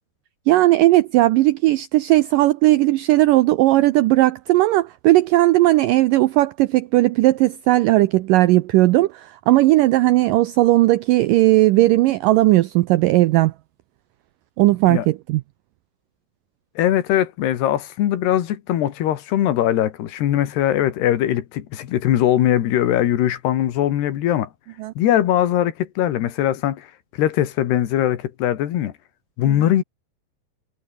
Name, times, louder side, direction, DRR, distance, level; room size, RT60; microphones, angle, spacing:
voice 1, 0.5-13.5 14.6-15.4 24.8-24.9 29.5-29.7, right 17 dB, 85° right, 1.9 m, -17 dB
voice 2, 16.8-24.5 25.0-26.9 27.2-28.9 29.4-29.8, left 12 dB, 85° left, 3.9 m, -20 dB
omnidirectional pair, 4.6 m